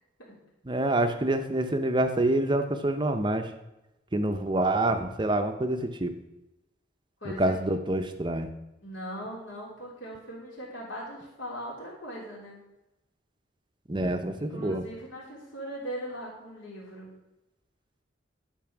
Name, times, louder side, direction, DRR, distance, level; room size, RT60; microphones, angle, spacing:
voice 1, 0.7-3.5 4.1-6.1 7.4-8.5 13.9-14.8, right 1 dB, 25° right, 7 dB, 0.7 m, -26 dB
voice 2, 7.2-7.7 8.8-12.6 14.4-17.1, equal, 70° left, -4 dB, 3.4 m, -39 dB
11.0 x 4.7 x 6.0 m, 0.95 s
head